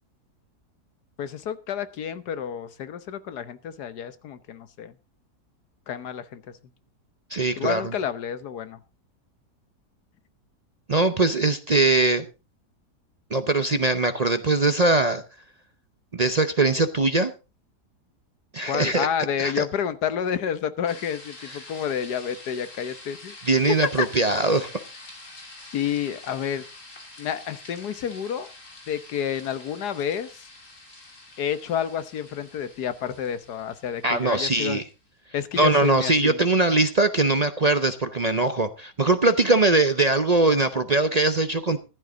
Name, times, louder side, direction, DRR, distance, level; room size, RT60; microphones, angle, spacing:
voice 1, 1.2-4.9 5.9-6.4 7.6-8.8 18.7-24.1 25.7-26.6 27.2-28.5 28.9-30.3 31.4-34.8 35.3-36.4, left 8 dB, 75° left, 1.6 m, -29 dB
voice 2, 7.3-7.8 10.9-12.3 13.3-15.2 16.1-17.3 18.5-19.1 19.4-19.7 23.4-24.7 34.0-34.8 35.6-41.8, right 2 dB, 40° right, 0.6 m, -21 dB
sound 1, 20.9-34.9, left 2 dB, 50° left, 3.4 m, -46 dB
14.5 x 11.5 x 3.8 m
omnidirectional pair, 1.7 m